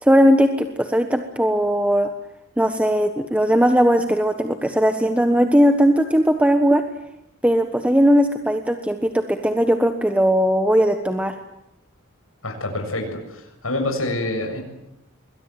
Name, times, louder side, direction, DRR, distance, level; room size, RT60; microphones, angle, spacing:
voice 1, 0.0-2.1 2.6-6.8 7.4-11.4, equal, 5° right, 7 dB, 1.3 m, -18 dB
voice 2, 12.4-14.6, left 2 dB, 80° left, 3 dB, 7.4 m, -27 dB
27.5 x 22.5 x 9.2 m, 0.86 s
head